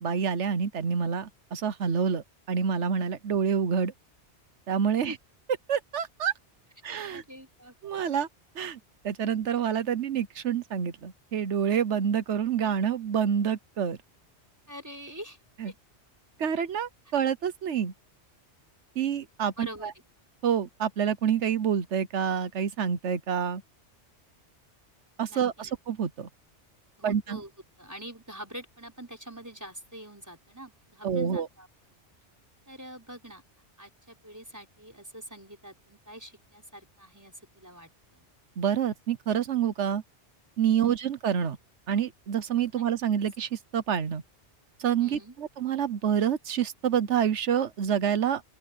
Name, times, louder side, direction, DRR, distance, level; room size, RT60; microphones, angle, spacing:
voice 1, 0.0-3.9 4.7-5.1 5.7-6.3 6.8-7.2 7.8-8.3 8.5-14.0 15.6-15.7 16.4-17.9 19.0-19.9 20.4-23.6 25.2-26.3 27.0-27.4 31.0-31.5 38.6-40.0 40.6-41.6 41.9-44.2 44.8-48.4, right 8 dB, 85° right, 1.3 m, -27 dB
voice 2, 7.1-7.7 14.7-15.4 15.6-15.7 19.6-19.9 25.3-25.7 27.0-27.5 27.8-32.0 32.7-33.4 33.8-38.3 40.7-40.9 45.0-45.3, right 1 dB, 15° right, 4.8 m, -45 dB
open air
omnidirectional pair, 1.2 m